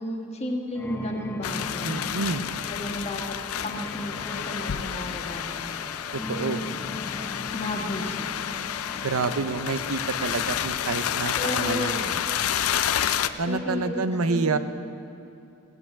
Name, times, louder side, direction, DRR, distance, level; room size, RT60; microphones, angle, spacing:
voice 1, 0.0-2.1 2.6-3.4 3.6-5.8 6.1-6.3 7.5-8.6 11.3-12.2 13.5-14.6, left 1 dB, 30° left, 1 dB, 1.6 m, -33 dB
sound 1, 0.7-14.0, left 2 dB, 10° left, 0.4 m, -39 dB
sound 2, 1.4-13.3, left 10 dB, 75° left, 0.5 m, -30 dB
voice 2, 1.8-2.5 6.1-6.6 9.0-12.0 13.4-14.6, right 4 dB, 75° right, 10 dB, 0.6 m, -28 dB
17.5 x 8.2 x 8.3 m, 2.6 s
head